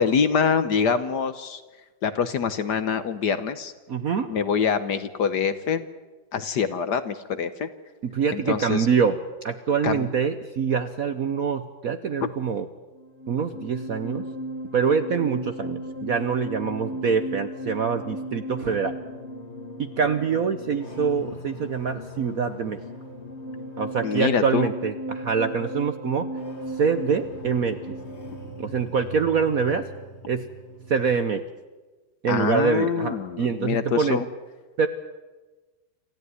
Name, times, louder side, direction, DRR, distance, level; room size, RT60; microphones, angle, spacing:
voice 1, 0.0-1.6 2.0-3.7 4.3-5.8 6.3-7.7 8.3-8.9 9.8-10.1 12.2-12.3 24.0-24.7 32.3-34.3, left 6 dB, 60° left, 12 dB, 1.4 m, -25 dB
voice 2, 3.9-4.3 8.0-9.2 9.4-12.7 13.3-14.3 14.7-19.0 19.8-22.8 23.8-26.3 26.8-27.9 28.6-29.9 30.3-30.5 30.9-31.4 32.2-34.2 34.8-34.9, right 6 dB, 55° right, 10 dB, 1.0 m, -25 dB
sound 1, 12.9-31.4, equal, 35° left, 1.7 m, -37 dB
27.0 x 14.0 x 9.6 m, 1.2 s
omnidirectional pair, 2.4 m